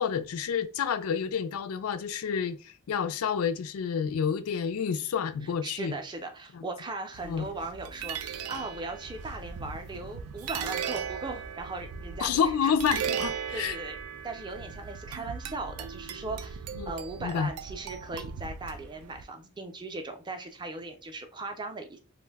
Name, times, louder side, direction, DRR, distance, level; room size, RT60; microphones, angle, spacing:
voice 1, 0.0-6.0 6.5-6.6 7.2-7.5 12.2-13.8 16.8-16.9 17.2-17.5, left 7 dB, 80° left, 0.3 m, -29 dB
voice 2, 5.6-12.7 13.5-14.0 14.2-22.0, right 3 dB, 20° right, 0.4 m, -38 dB
sound 1, 7.1-19.2, right 7 dB, 90° right, 0.3 m, -38 dB
2.5 x 2.1 x 3.3 m
head